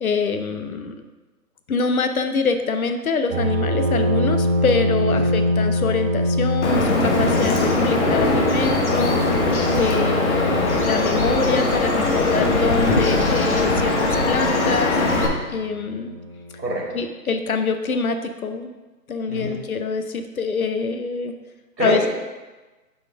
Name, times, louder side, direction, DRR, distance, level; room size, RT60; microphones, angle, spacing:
voice 1, 0.0-1.0 1.7-9.1 9.8-14.9 15.5-16.1 16.9-18.7 19.1-21.3 21.8-22.0, left 4 dB, 60° left, 8 dB, 0.8 m, -25 dB
sound 1, 3.3-16.7, equal, 45° right, 1.3 m, -25 dB
Bird vocalization bird call bird song, 6.6-15.3, left 2 dB, 45° left, 1.1 m, -20 dB
voice 2, 16.6-17.0 19.3-19.6 21.8-22.1, right 1 dB, 90° right, -3 dB, 2.0 m, -26 dB
7.0 x 4.4 x 4.4 m, 1.2 s
figure-of-eight pair, 145°, 49 cm